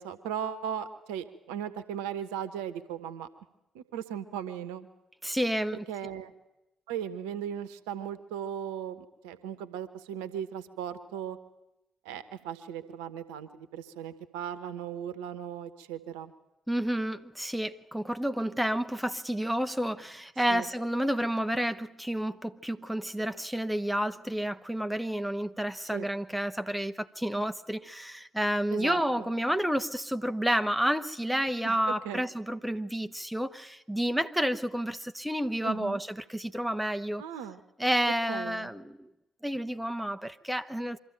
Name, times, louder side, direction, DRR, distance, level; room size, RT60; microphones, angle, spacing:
voice 1, 0.0-3.3 3.7-4.9 5.9-6.3 6.9-11.4 12.0-16.3 20.5-20.7 25.9-26.1 28.7-29.3 31.6-31.8 32.0-32.2 35.6-36.0 37.2-37.6 38.3-38.7, right 9 dB, 70° right, 1.0 m, -37 dB
voice 2, 5.2-5.8 16.7-37.2 37.8-39.1 39.4-41.0, equal, 5° right, 0.9 m, -30 dB
24.0 x 13.5 x 9.0 m
figure-of-eight pair, 40°, 0 cm